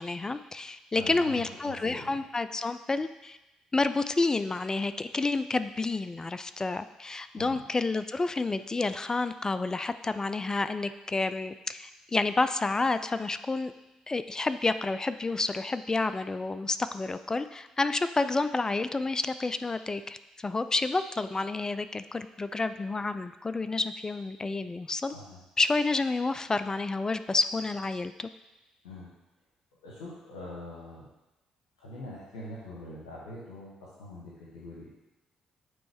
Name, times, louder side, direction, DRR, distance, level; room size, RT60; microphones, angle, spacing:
voice 1, 0.0-3.4 3.7-13.7 14.1-25.1 25.6-28.3, left 3 dB, 25° left, 12 dB, 0.3 m, -29 dB
voice 2, 0.9-2.2 7.4-7.6 25.1-25.4 28.8-29.1 29.8-31.1 31.8-34.9, left 1 dB, 90° left, -7 dB, 1.0 m, -43 dB
8.9 x 3.1 x 3.5 m, 0.99 s
hypercardioid pair, 50°, 2 cm